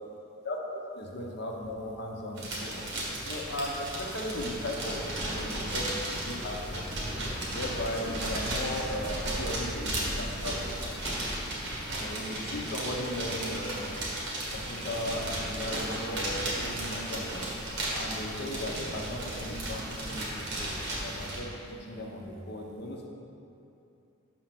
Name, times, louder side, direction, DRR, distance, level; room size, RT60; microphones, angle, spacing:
voice 1, 0.4-2.9 3.2-6.9 7.5-11.0 12.0-13.9 14.5-17.5 17.9-20.7 21.0-23.1, left 1 dB, 55° left, 0 dB, 0.9 m, -37 dB
sound 1, 2.4-21.4, right 1 dB, 60° right, 1.7 m, -34 dB
6.4 x 4.4 x 5.9 m, 2.7 s
head